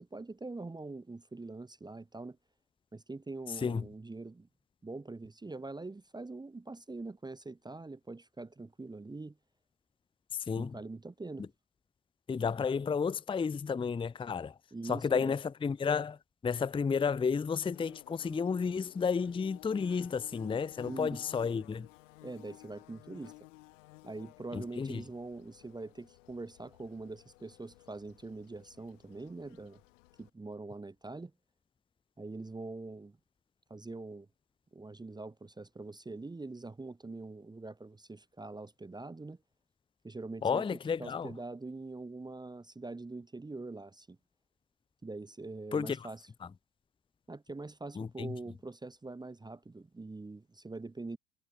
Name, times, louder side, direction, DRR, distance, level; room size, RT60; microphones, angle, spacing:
voice 1, 0.0-2.4 2.9-4.5 4.8-9.4 10.6-11.5 14.7-15.4 20.8-21.2 22.2-23.4 24.0-29.8 30.2-31.3 32.2-33.2 33.7-34.3 34.7-39.4 40.0-40.7 41.0-44.2 45.0-46.3 47.3-51.2, right 3 dB, 10° right, 1.0 m, -44 dB
voice 2, 12.3-14.5 14.9-16.2 16.4-21.9 24.5-25.0 40.4-41.3 45.7-46.0 48.0-48.3, left 6 dB, 15° left, 0.6 m, -32 dB
Bird / Buzz, 17.7-30.3, left 20 dB, 85° left, 7.3 m, -55 dB
supercardioid pair, 85°, 37 cm